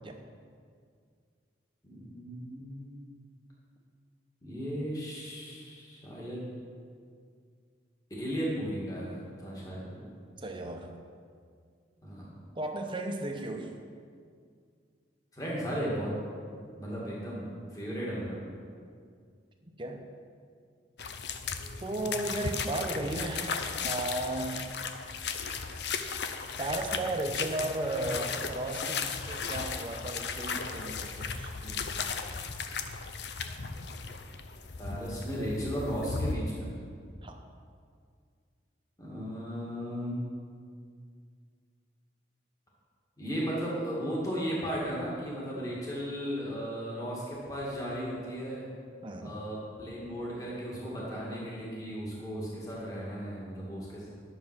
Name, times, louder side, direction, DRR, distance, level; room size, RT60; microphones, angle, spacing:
voice 1, 1.8-2.9 4.4-6.4 8.2-10.0 12.0-12.4 15.3-16.1 16.8-18.4 34.8-36.7 39.0-40.2 43.2-48.6 49.2-54.1, equal, 20° left, -6 dB, 2.1 m, -35 dB
voice 2, 10.4-10.9 12.6-13.8 19.8-20.0 21.8-24.6 26.6-32.1 37.2-37.4 49.0-49.4, right 2 dB, 25° right, 4 dB, 0.8 m, -35 dB
sound 1, 21.0-36.4, left 5 dB, 60° left, 0.6 m, -36 dB
11.0 x 6.9 x 6.1 m, 2.2 s
head